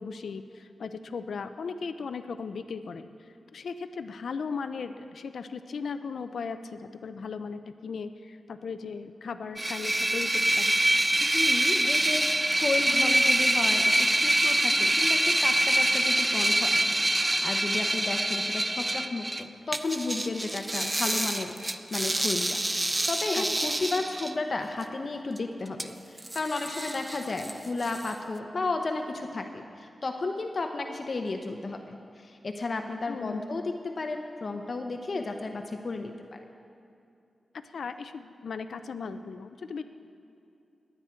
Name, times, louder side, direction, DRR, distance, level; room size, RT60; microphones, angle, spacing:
voice 1, 0.0-10.8 23.3-23.4 33.1-33.4 37.5-39.8, left 5 dB, 80° left, 10 dB, 0.5 m, -37 dB
sound 1, 9.6-19.4 19.7-24.3 25.4-25.5 25.8-25.9 26.2-27.5 27.8-28.1, right 1 dB, 20° right, 0.6 m, -26 dB
voice 2, 11.2-22.6 23.1-36.4, left 3 dB, 50° left, 4 dB, 0.8 m, -33 dB
21.0 x 9.0 x 4.5 m, 2.6 s
cardioid pair, 70°, 0 cm